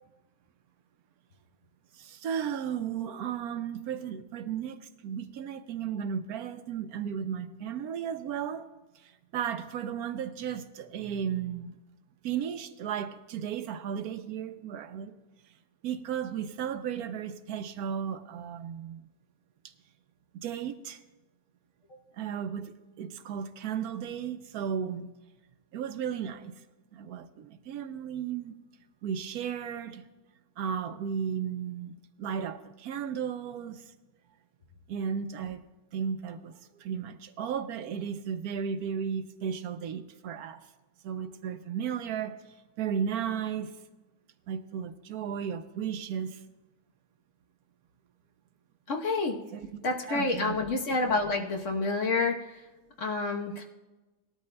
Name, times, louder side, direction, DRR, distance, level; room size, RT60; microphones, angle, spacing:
voice 1, 1.9-8.7 9.0-11.7 12.2-15.2 15.8-19.0 20.4-21.0 22.2-25.1 25.7-26.5 26.9-28.5 29.0-30.0 30.6-33.8 34.9-35.7 35.9-40.6 41.0-42.4 42.8-43.7 44.5-46.4 49.5-49.7 50.1-50.6, right 8 dB, 75° right, 1.1 m, -34 dB
voice 2, 48.9-49.4 49.8-52.4 53.0-53.6, left 3 dB, 55° left, 1.3 m, -28 dB
19.0 x 12.5 x 2.2 m
omnidirectional pair, 1.7 m